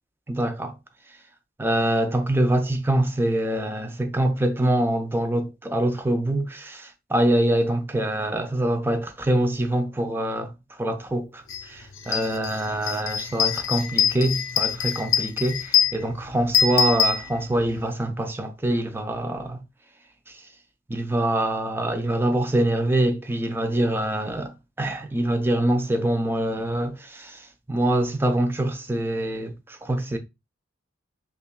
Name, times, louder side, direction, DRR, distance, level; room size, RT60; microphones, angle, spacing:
voice 1, 0.3-0.8 1.6-10.5 10.8-19.6 20.3-20.4 20.9-30.2, right 1 dB, 10° right, 0.5 m, -25 dB
sound 1, 11.5-11.6 12.0-17.8, left 8 dB, 70° left, 0.5 m, -24 dB
5.5 x 2.4 x 2.2 m
head